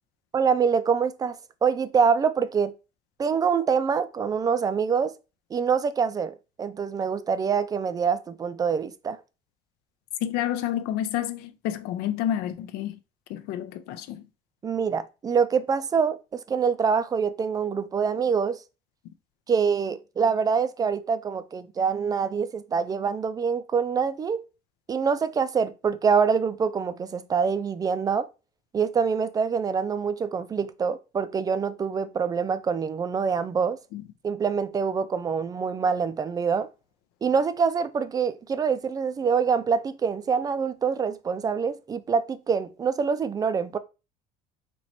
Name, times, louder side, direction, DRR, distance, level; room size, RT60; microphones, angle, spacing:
voice 1, 0.3-2.7 3.2-5.1 5.5-9.2 14.6-18.6 19.5-24.4 24.9-28.3 28.7-33.8 34.2-36.7 37.2-43.8, right 6 dB, 25° right, 0.3 m, -25 dB
voice 2, 10.2-13.0 13.3-14.3 33.9-34.0, left 11 dB, 80° left, 0.6 m, -29 dB
3.0 x 3.0 x 4.2 m
cardioid pair, 120°, 16 cm